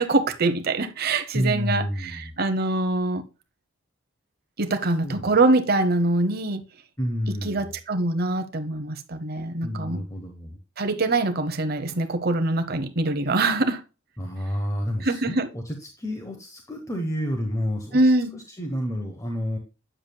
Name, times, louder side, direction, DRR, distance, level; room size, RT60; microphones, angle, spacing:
voice 1, 0.0-3.2 4.6-6.6 7.4-10.0 10.8-13.8 15.0-15.5 17.9-18.4, right 2 dB, 50° right, 0.9 m, -24 dB
voice 2, 1.3-2.3 5.0-5.4 7.0-7.8 9.6-10.6 14.2-18.0 18.3-19.6, equal, 15° left, 1.0 m, -30 dB
8.7 x 7.2 x 2.3 m
head